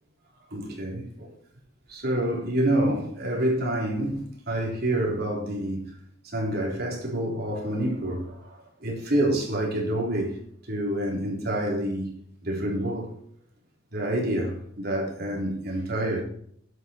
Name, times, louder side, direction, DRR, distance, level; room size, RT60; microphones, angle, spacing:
voice 1, 0.5-1.3 1.9-5.9 6.2-10.3 10.7-12.1 12.4-13.1 13.9-16.2, right 1 dB, 55° right, 3.9 m, -27 dB
11.0 x 8.5 x 4.6 m
head